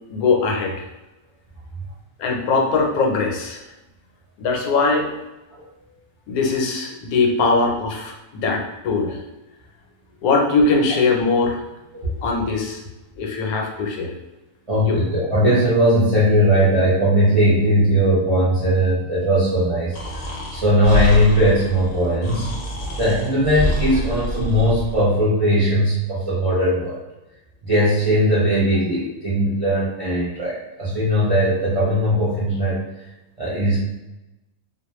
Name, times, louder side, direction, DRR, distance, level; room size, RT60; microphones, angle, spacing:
voice 1, 0.1-0.9 2.2-3.6 4.4-5.1 6.3-9.2 10.2-11.6 12.0-12.8 13.2-14.1 14.8-15.0, left 3 dB, 80° left, 1 dB, 1.1 m, -21 dB
voice 2, 14.7-20.3 20.5-22.5 23.0-27.0 27.6-32.8 33.4-33.8, equal, 50° right, -8 dB, 0.4 m, -19 dB
Breathing, 19.9-25.0, left 1 dB, 55° left, 0.7 m, -27 dB
2.4 x 2.2 x 3.0 m, 1.0 s
omnidirectional pair, 1.5 m